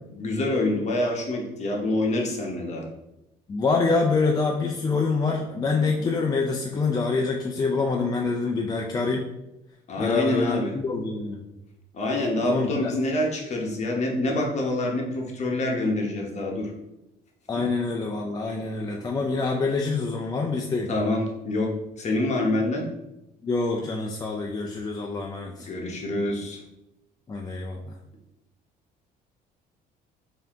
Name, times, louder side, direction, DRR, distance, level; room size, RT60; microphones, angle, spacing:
voice 1, 0.1-2.9 9.9-10.7 11.9-16.7 17.6-17.7 20.9-22.9 25.6-26.6, left 1 dB, 40° left, 0 dB, 1.0 m, -26 dB
voice 2, 3.5-9.2 10.0-11.5 12.4-12.9 17.5-20.9 23.4-25.7 27.3-27.9, left 4 dB, 25° left, 0 dB, 0.4 m, -26 dB
4.2 x 2.8 x 3.6 m, 0.90 s
cardioid pair, 110°, 17 cm